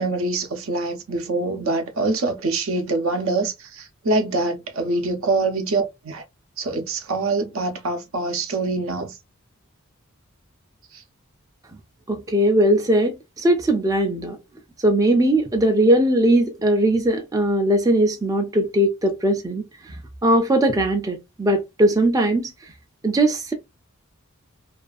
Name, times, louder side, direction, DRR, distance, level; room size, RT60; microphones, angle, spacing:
voice 1, 0.0-6.2 6.6-9.1 10.9-11.0, right 3 dB, 70° right, 0.6 m, -24 dB
voice 2, 12.1-14.4 14.8-19.6 20.2-22.5 23.0-23.5, right 1 dB, 15° right, 0.4 m, -19 dB
2.4 x 2.3 x 2.4 m
head